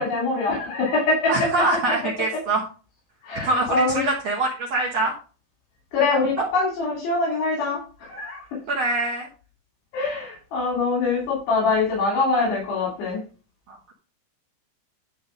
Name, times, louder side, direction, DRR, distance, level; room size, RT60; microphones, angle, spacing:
voice 1, 0.0-1.5 3.2-4.1 5.9-8.4 9.9-13.2, left 3 dB, 80° left, -4 dB, 5.0 m, -24 dB
voice 2, 1.3-2.6 3.4-5.1 6.4-6.5 8.7-9.3 13.7-13.9, right 2 dB, 60° right, -2 dB, 1.8 m, -24 dB
11.5 x 4.4 x 5.2 m, 0.36 s
omnidirectional pair, 4.8 m